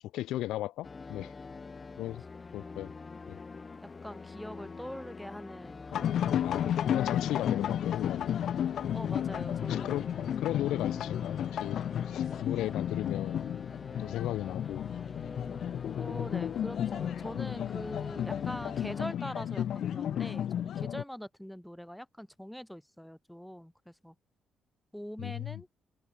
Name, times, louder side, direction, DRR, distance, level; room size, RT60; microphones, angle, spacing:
voice 1, 0.1-1.3 2.0-2.2 2.5-2.9 3.3-3.4 6.4-8.3 9.7-10.1 10.4-13.5 14.0-14.9 25.2-25.6, left 14 dB, 90° left, 1.6 m, -36 dB
sound 1, 0.8-19.2, left 4 dB, 30° left, 6.4 m, -45 dB
voice 2, 3.8-6.8 8.9-10.3 16.0-24.1 24.9-25.7, equal, ahead, 2.0 m, -43 dB
sound 2, 5.9-21.0, left 10 dB, 65° left, 0.6 m, -33 dB
cardioid pair, 90°, 0 cm